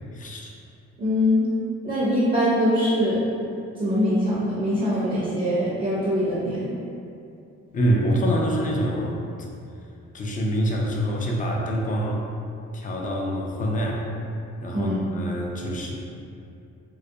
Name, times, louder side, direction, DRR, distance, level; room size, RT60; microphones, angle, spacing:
voice 1, 0.1-0.5 7.7-9.2 10.1-12.2 12.7-14.1 14.6-15.9, equal, 30° left, -1 dB, 0.4 m, -25 dB
voice 2, 1.0-1.5 1.8-3.2 3.8-6.7 14.7-15.1, equal, 30° right, -8 dB, 0.6 m, -23 dB
2.3 x 2.1 x 2.7 m, 2.6 s
cardioid pair, 90°, 30 cm